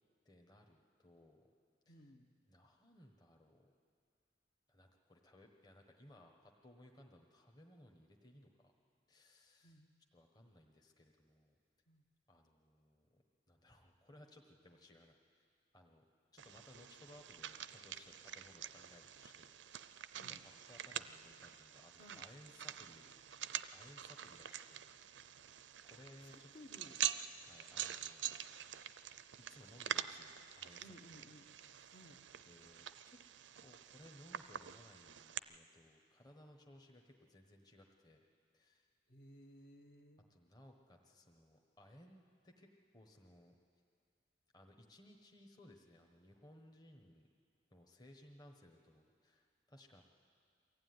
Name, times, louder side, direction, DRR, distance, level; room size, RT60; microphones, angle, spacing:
voice 1, 0.2-1.5 1.8-2.1 2.5-3.7 4.7-8.7 9.1-9.8 10.1-11.6 12.3-15.5 15.7-16.0 16.3-23.1 23.7-25.3 25.8-26.5 27.4-28.2 29.5-31.2 31.7-32.2 32.4-33.2 33.6-38.2 38.5-38.9 40.3-42.7 42.9-43.6 44.5-47.3 47.7-50.0, left 1 dB, 20° left, 1 dB, 1.2 m, -62 dB
voice 2, 1.9-2.3 9.6-9.9 11.9-12.0 20.2-20.4 22.0-22.2 26.3-27.0 30.8-31.5 31.9-32.2 39.1-40.2, equal, 50° left, 3 dB, 1.4 m, -59 dB
sound 1, 16.4-35.4, right 10 dB, 85° right, 0.5 m, -46 dB
23.0 x 15.0 x 9.6 m, 2.3 s
head